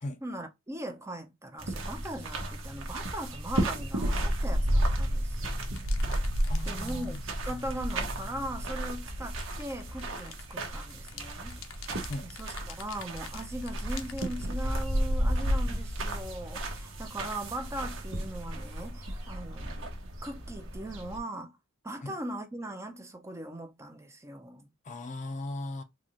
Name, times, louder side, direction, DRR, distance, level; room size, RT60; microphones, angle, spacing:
voice 1, 0.2-5.6 6.7-7.2 7.5-11.6 12.4-19.9 20.2-21.6 21.8-24.7, right 1 dB, 15° right, 0.6 m, -39 dB
sound 1, 1.6-21.2, right 1 dB, 70° right, 1.0 m, -32 dB
sound 2, 5.8-7.8 9.2-14.5, left 8 dB, 75° left, 0.7 m, -48 dB
voice 2, 6.5-7.2 12.1-12.3 22.0-22.2 24.8-25.8, left 2 dB, 35° left, 0.5 m, -38 dB
3.9 x 2.5 x 3.0 m
head